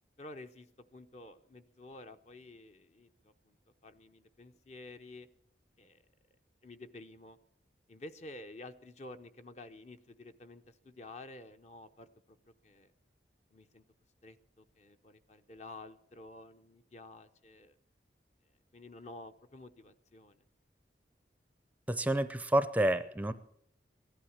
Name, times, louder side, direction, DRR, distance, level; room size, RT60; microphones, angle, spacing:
voice 1, 0.2-3.6 3.8-5.3 5.8-6.0 6.6-7.4 7.9-12.4 12.6-12.9 13.5-13.8 14.2-17.7 18.7-20.4, left 2 dB, 40° left, 9 dB, 0.7 m, -51 dB
voice 2, 21.9-23.3, right 1 dB, 10° right, 12 dB, 0.5 m, -29 dB
17.0 x 11.5 x 7.2 m, 0.70 s
head